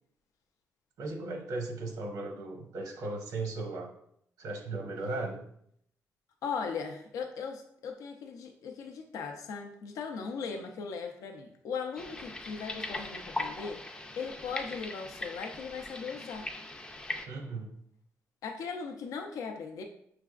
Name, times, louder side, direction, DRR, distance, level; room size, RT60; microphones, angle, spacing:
voice 1, 1.0-3.9 4.4-5.4 17.3-17.8, right 2 dB, 85° right, 3 dB, 0.8 m, -36 dB
voice 2, 6.4-13.8 14.2-16.5 18.4-19.8, left 5 dB, 80° left, 4 dB, 0.5 m, -38 dB
sound 1, 12.0-17.3, left 2 dB, 15° left, 0.4 m, -40 dB
5.8 x 3.3 x 2.4 m, 0.70 s
cardioid pair, 140°, 6 cm